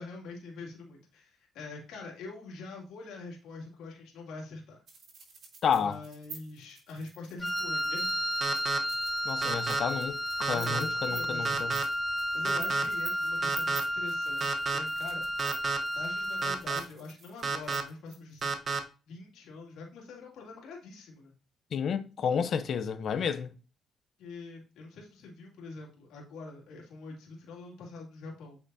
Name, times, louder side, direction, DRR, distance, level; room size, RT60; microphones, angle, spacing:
voice 1, 0.0-4.8 5.8-8.5 10.5-11.8 12.1-15.3 15.9-18.5 19.1-21.3 24.2-28.6, left 3 dB, 85° left, 2.3 m, -45 dB
sound 1, 4.9-18.4, right 4 dB, 60° right, 3.2 m, -49 dB
voice 2, 5.6-6.0 9.2-11.7 21.7-23.5, left 7 dB, 60° left, 0.8 m, -31 dB
Wind instrument woodwind instrument, 7.4-16.7, equal, 15° left, 0.4 m, -32 dB
sound 2, 8.4-8.8 9.4-9.8 10.4-10.8 11.4-11.8 12.4-12.8 13.4-13.8 14.4-14.8 15.4-15.8 16.4-16.8 17.4-17.8 18.4-18.8, right 4 dB, 40° right, 1.0 m, -30 dB
8.3 x 5.9 x 2.7 m
cardioid pair, 90°, 0 cm